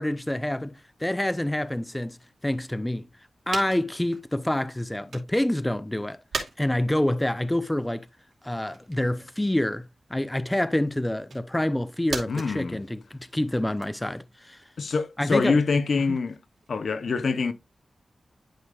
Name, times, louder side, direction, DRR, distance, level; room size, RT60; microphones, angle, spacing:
voice 1, 0.0-2.2 2.4-3.1 3.5-6.2 6.6-8.1 8.4-14.6 15.2-15.6 16.1-16.2, left 1 dB, 10° left, 0.6 m, -27 dB
sound 1, 3.5-5.4 5.8-16.9, right 4 dB, 75° right, 2.5 m, -41 dB
voice 2, 12.3-12.8 14.8-16.4 16.7-17.5, left 4 dB, 70° left, 0.7 m, -25 dB
11.5 x 5.4 x 2.4 m
cardioid pair, 70°, 0 cm